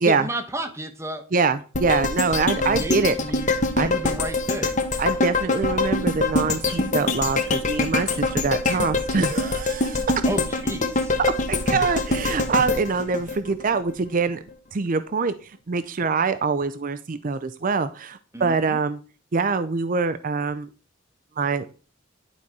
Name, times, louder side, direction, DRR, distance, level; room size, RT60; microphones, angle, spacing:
voice 1, 0.0-1.2 2.5-3.5 3.8-4.8 6.7-6.9 10.2-11.1 18.3-18.8, right 1 dB, 15° right, 8 dB, 1.0 m, -31 dB
voice 2, 1.3-3.1 3.8-3.9 5.0-10.1 11.5-14.4 14.7-19.0 19.3-20.7 21.4-21.7, right 4 dB, 40° right, 12 dB, 0.5 m, -24 dB
sound 1, 1.7-13.9 14.3-14.4, left 3 dB, 35° left, 1.2 m, -24 dB
11.0 x 4.3 x 4.7 m, 0.36 s
head